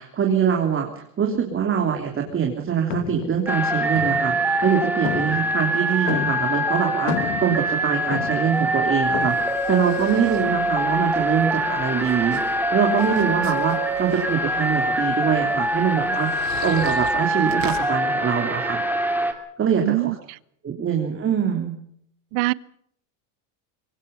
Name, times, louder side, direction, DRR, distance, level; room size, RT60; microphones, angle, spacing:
voice 1, 0.0-7.1 7.4-9.3 9.7-12.4 12.7-16.3 16.6-18.8 19.6-19.9 20.6-21.7, right 7 dB, 25° right, 2 dB, 3.4 m, -23 dB
sound 1, 2.3-2.6 2.9-4.7 5.0-6.7 6.9-8.6 9.1-9.5, left 11 dB, 70° left, 2.0 m, -31 dB
sound 2, 3.5-19.3, right 1 dB, 5° right, 2.6 m, -24 dB
sound 3, 8.3-17.9, right 7 dB, 50° right, 7.0 m, -41 dB
voice 2, 19.8-20.1 22.3-22.5, right 23 dB, 75° right, 21 dB, 0.9 m, -21 dB
24.5 x 22.5 x 5.5 m, 0.68 s
cardioid pair, 145°, 47 cm